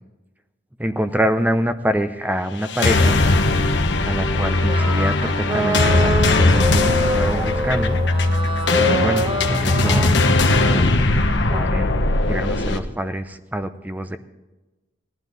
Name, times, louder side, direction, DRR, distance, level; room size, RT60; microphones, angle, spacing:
voice 1, 0.8-3.2 4.0-8.0 8.9-10.2 10.6-11.1 11.5-11.9 12.2-14.2, equal, 10° right, 9 dB, 0.7 m, -25 dB
sound 1, 2.6-12.8, left 2 dB, 65° left, 1.1 m, -19 dB
sound 2, 4.7-10.1, equal, 25° right, 1.1 m, -25 dB
18.0 x 12.0 x 4.1 m, 1.1 s
head